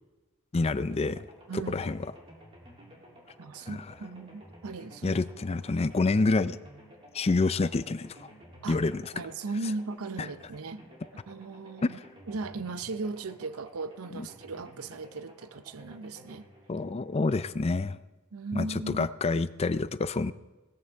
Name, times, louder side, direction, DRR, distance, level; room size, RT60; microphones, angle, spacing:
voice 1, 0.5-1.3 1.5-2.0 3.7-3.8 5.0-6.6 7.1-8.3 8.7-9.1 11.8-12.0 14.1-14.2 16.7-18.0 18.5-20.3, left 3 dB, 30° left, 0.4 m, -28 dB
sound 1, 0.8-17.7, equal, 25° right, 2.9 m, -53 dB
voice 2, 1.5-1.9 3.4-5.2 8.6-8.8 9.1-10.8 11.3-12.0 12.3-16.5 18.3-19.1, right 3 dB, 75° right, 0.6 m, -37 dB
18.0 x 14.0 x 3.5 m
head